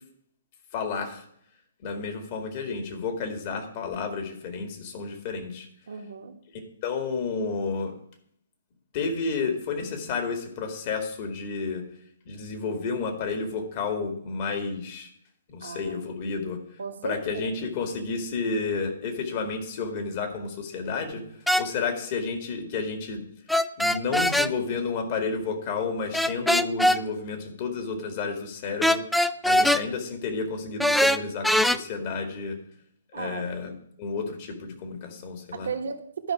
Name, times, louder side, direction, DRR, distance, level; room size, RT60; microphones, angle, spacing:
voice 1, 0.7-1.2 1.8-5.7 6.8-7.9 8.9-11.8 12.3-15.1 15.5-16.6 17.0-21.2 21.5-23.2 23.8-29.0 29.4-32.6 33.1-33.7 34.0-35.7, left 4 dB, 40° left, 5 dB, 2.0 m, -31 dB
voice 2, 5.9-6.4 15.6-16.0 16.8-17.5 33.1-33.5 35.5-36.3, right 6 dB, 70° right, 5 dB, 1.4 m, -34 dB
sound 1, 21.5-21.7 23.5-24.5 26.1-27.0 28.8-29.8 30.8-31.8, left 1 dB, ahead, 0.3 m, -21 dB
12.0 x 5.4 x 4.9 m, 0.68 s
hypercardioid pair, 135°, 0 cm